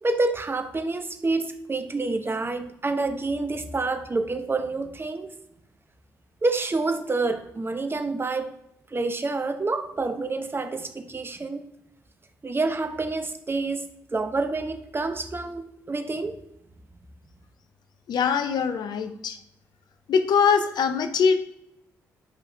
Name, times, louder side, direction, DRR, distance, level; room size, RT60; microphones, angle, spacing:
voice 1, 0.0-5.3 6.4-8.5 8.9-11.6 12.4-16.4, right 3 dB, 30° right, 8 dB, 0.8 m, -28 dB
voice 2, 18.1-19.4 20.1-21.3, left 6 dB, 60° left, 9 dB, 0.6 m, -22 dB
8.8 x 5.2 x 2.6 m, 0.78 s
hypercardioid pair, 45°, 8 cm